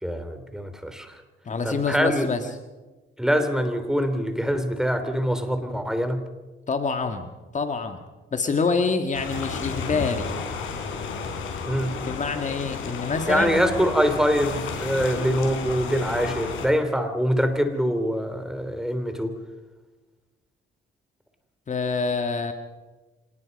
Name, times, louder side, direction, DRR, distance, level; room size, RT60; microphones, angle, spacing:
voice 1, 0.0-1.2 1.6-2.3 3.2-6.3 11.7-12.0 13.3-19.3, equal, 5° right, 8 dB, 3.2 m, -24 dB
voice 2, 1.5-2.4 6.7-8.0 8.3-10.3 12.0-13.6 21.7-22.5, left 4 dB, 40° left, 6 dB, 1.9 m, -26 dB
sound 1, 9.1-16.7, left 5 dB, 80° left, 4.5 m, -32 dB
26.0 x 19.5 x 5.3 m, 1.2 s
cardioid pair, 90°, 20 cm